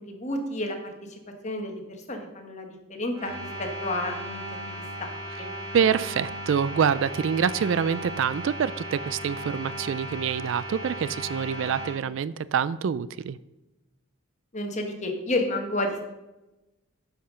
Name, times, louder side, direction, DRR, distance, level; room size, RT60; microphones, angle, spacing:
voice 1, 0.0-4.4 4.8-5.5 14.5-16.1, left 1 dB, 35° left, 3 dB, 1.4 m, -31 dB
sound 1, 3.1-11.9, equal, 15° right, 3.5 m, -36 dB
voice 2, 5.7-13.4, right 7 dB, 60° right, 18 dB, 0.3 m, -26 dB
9.9 x 5.9 x 6.3 m, 1.0 s
head